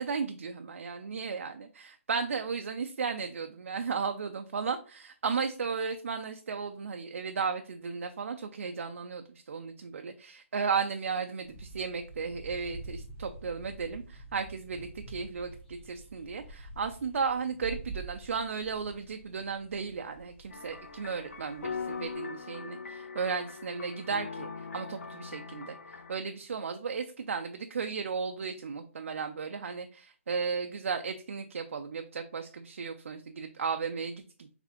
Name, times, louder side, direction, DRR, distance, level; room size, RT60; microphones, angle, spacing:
voice 1, 0.0-25.8 26.1-34.6, right 5 dB, 70° right, 6 dB, 0.4 m, -35 dB
sound 1, 11.4-22.2, right 3 dB, 10° left, 1.0 m, -47 dB
sound 2, 20.5-26.2, left 5 dB, 90° left, 0.6 m, -41 dB
4.0 x 3.5 x 2.9 m, 0.38 s
hypercardioid pair, 175°, 7 cm